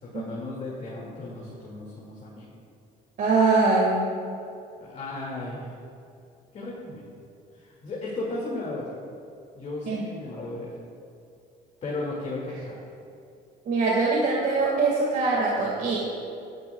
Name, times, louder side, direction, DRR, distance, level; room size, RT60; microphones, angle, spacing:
voice 1, 0.0-2.5 4.8-5.7 6.5-7.1 7.5-8.9 9.5-10.7 11.8-12.8, left 2 dB, 45° left, -5 dB, 2.2 m, -35 dB
voice 2, 3.2-4.1 9.9-10.1 13.7-16.0, right 3 dB, 55° right, -4 dB, 1.9 m, -23 dB
18.5 x 10.5 x 2.3 m, 2.6 s
cardioid pair, 110°, 17 cm